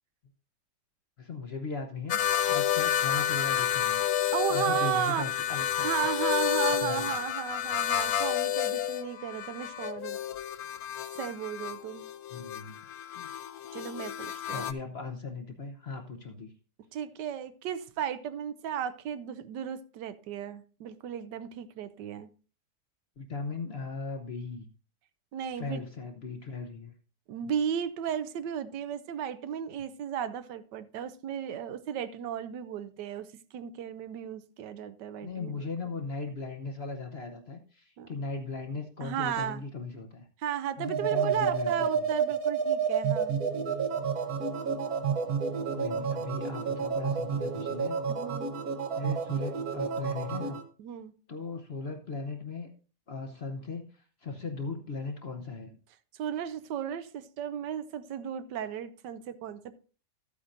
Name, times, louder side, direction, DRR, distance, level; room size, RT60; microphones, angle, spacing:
voice 1, 1.2-4.0 4.5-5.9 6.7-7.1 12.3-12.8 14.5-16.5 23.2-24.7 25.6-26.9 35.2-40.3 40.8-42.0 45.7-48.0 49.0-50.6 51.3-52.7 53.1-55.8, left 4 dB, 50° left, 4 dB, 0.8 m, -38 dB
sound 1, 2.1-14.7, left 10 dB, 70° left, 1.0 m, -30 dB
voice 2, 4.3-5.3 5.8-10.2 11.2-12.1 13.7-14.7 16.9-22.3 25.3-25.8 27.3-33.3 33.5-35.6 38.0-38.1 39.0-39.6 40.4-43.3 48.1-48.5 50.8-51.1 56.1-59.8, right 9 dB, 80° right, 13 dB, 1.3 m, -34 dB
sound 2, 40.8-50.6, right 6 dB, 60° right, 1.3 m, -30 dB
13.5 x 8.5 x 2.6 m, 0.37 s
omnidirectional pair, 1.9 m